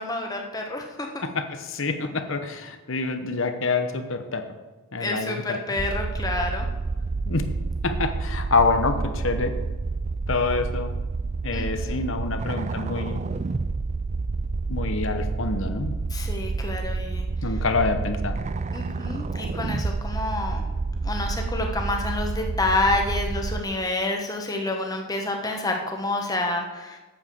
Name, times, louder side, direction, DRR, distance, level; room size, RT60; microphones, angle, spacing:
voice 1, 0.0-1.3 5.0-6.7 11.5-12.0 16.1-17.3 18.7-20.6 21.0-27.0, left 2 dB, 15° left, 2 dB, 1.3 m, -28 dB
voice 2, 1.2-4.4 4.9-5.6 7.3-7.5 7.8-9.5 10.3-10.9 11.4-13.2 14.7-16.0 17.4-18.4, left 3 dB, 60° left, 7 dB, 1.0 m, -26 dB
sound 1, 5.8-23.6, right 3 dB, 30° right, 0.3 m, -29 dB
8.9 x 7.4 x 6.8 m, 1.2 s
head